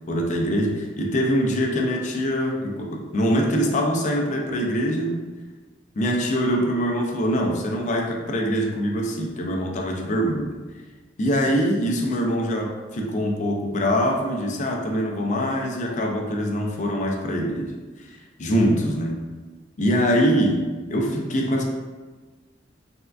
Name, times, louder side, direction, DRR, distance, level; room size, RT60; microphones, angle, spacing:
voice 1, 0.1-5.2 6.0-10.5 11.2-17.7 18.0-18.1 18.4-19.2 19.8-21.6, equal, 40° left, 0 dB, 0.4 m, -23 dB
3.5 x 2.2 x 2.3 m, 1.3 s
head